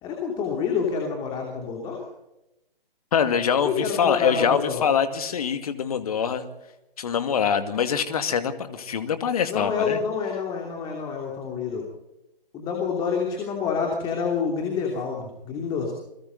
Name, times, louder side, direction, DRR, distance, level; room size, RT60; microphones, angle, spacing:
voice 1, 0.0-2.0 3.6-4.8 9.4-11.9 12.5-15.9, left 6 dB, 15° left, 1 dB, 2.9 m, -28 dB
voice 2, 3.1-6.5 7.0-10.0, left 7 dB, 40° left, 10 dB, 2.3 m, -24 dB
29.0 x 22.0 x 4.1 m, 0.91 s
figure-of-eight pair, 145°, 29 cm